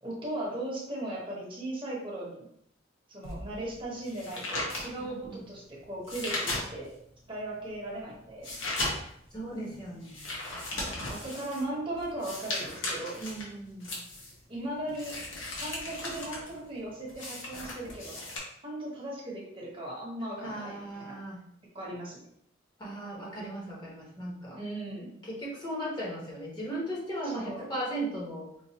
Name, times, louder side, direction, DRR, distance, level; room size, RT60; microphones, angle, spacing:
voice 1, 0.0-2.4 3.1-6.9 7.3-8.5 10.7-13.2 14.5-15.2 15.5-18.2 18.6-21.2 21.7-22.2 24.5-25.1 27.2-27.6, right 1 dB, 25° right, -4 dB, 1.0 m, -37 dB
sound 1, 3.2-7.1 7.5-18.4, left 2 dB, 90° left, 1.1 m, -37 dB
voice 2, 5.0-5.4 8.9-10.3 13.2-13.9 20.4-21.4 22.8-24.6 25.2-28.5, right 1 dB, 25° left, -4 dB, 1.0 m, -37 dB
4.6 x 2.4 x 2.8 m, 0.71 s
head